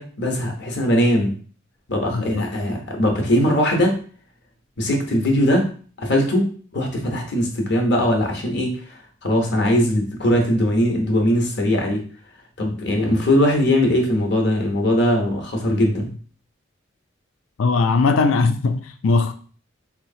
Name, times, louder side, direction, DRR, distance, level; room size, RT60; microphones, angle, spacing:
voice 1, 0.0-1.3 1.9-4.0 4.8-5.7 6.0-9.0 9.2-12.0 12.6-16.1, equal, 60° left, 0.9 m, -20 dB
voice 2, 2.1-2.4 17.6-19.3, left 4 dB, 85° left, 0.4 m, -19 dB
4.0 x 2.9 x 2.7 m
head